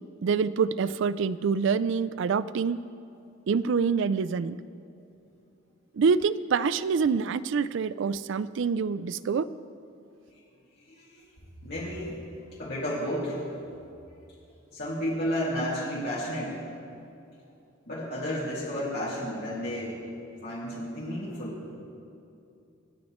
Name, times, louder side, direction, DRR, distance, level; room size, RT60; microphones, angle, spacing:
voice 1, 0.2-2.8 3.5-4.6 5.9-9.5, right 5 dB, 65° right, 16 dB, 0.4 m, -26 dB
voice 2, 10.9-11.2 11.6-12.2 12.6-13.4 14.7-16.6 17.9-20.1 20.4-21.6, equal, 55° left, -8 dB, 2.4 m, -32 dB
26.5 x 9.5 x 3.1 m, 2.7 s
head